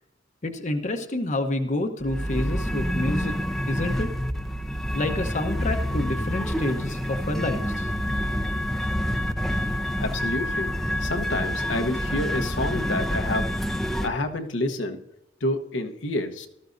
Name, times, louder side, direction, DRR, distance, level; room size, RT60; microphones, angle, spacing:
voice 1, 0.4-3.4 3.7-4.1 4.9-7.9, left 1 dB, 40° left, 5 dB, 0.9 m, -28 dB
sound 1, 2.0-14.1, equal, ahead, 0.7 m, -27 dB
voice 2, 10.0-10.7 11.0-13.6 14.0-15.0 15.4-16.5, left 2 dB, 70° left, 5 dB, 1.1 m, -28 dB
18.0 x 13.5 x 2.6 m, 0.84 s
head